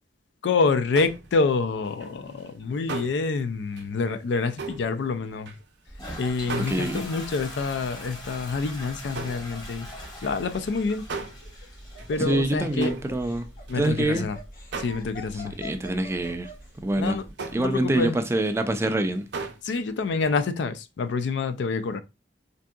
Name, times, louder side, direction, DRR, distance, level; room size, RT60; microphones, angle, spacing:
voice 1, 0.4-5.5 6.2-9.9 10.2-11.1 12.1-12.9 13.7-14.4 14.8-15.6 17.0-17.2 17.6-18.2 19.6-22.0, left 4 dB, 70° left, 0.4 m, -27 dB
sound 1, 0.9-1.5 1.8-6.0 6.4-7.6 8.0-8.3 8.6-14.2 14.6-15.4 15.7-15.8 16.2-16.5 16.9-17.1 17.4-19.8 20.1-20.4, right 4 dB, 65° right, 0.5 m, -39 dB
Toilet flush, 5.9-17.3, equal, 20° left, 1.0 m, -42 dB
voice 2, 6.6-7.0 12.2-13.5 13.7-14.3 15.6-16.5 16.8-17.2 17.5-19.3, right 1 dB, 15° right, 0.3 m, -25 dB
Laughter, 11.2-16.7, left 3 dB, 50° left, 0.7 m, -44 dB
3.5 x 2.6 x 2.2 m
head